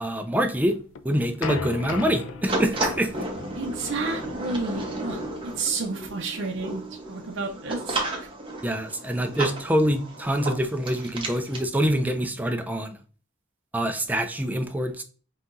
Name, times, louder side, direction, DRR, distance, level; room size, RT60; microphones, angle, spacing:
voice 1, 0.0-0.8 1.0-3.3 8.6-13.0 13.7-15.0, equal, 10° right, 0.4 m, -25 dB
sound 1, 0.7-5.6, left 5 dB, 75° left, 0.5 m, -37 dB
sound 2, 2.5-11.7, right 2 dB, 25° right, 0.9 m, -33 dB
voice 2, 3.5-6.8 7.1-8.3, right 3 dB, 60° right, 0.6 m, -31 dB
5.6 x 2.8 x 2.5 m
head